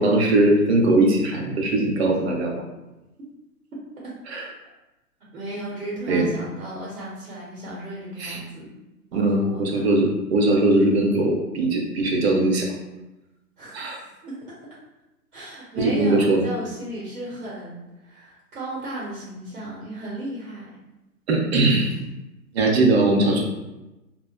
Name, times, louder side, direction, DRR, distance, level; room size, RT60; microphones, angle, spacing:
voice 1, 0.0-2.6 4.3-4.5 6.1-6.3 8.2-8.4 9.1-12.7 13.7-14.0 15.8-16.5 21.3-21.9 22.5-23.4, right 2 dB, 45° right, 0 dB, 0.7 m, -20 dB
voice 2, 5.3-8.7 9.1-9.9 13.6-14.4 15.3-20.7, right 1 dB, 80° right, -6 dB, 1.3 m, -35 dB
3.7 x 2.1 x 2.4 m, 1.0 s
hypercardioid pair, 130°, 45 cm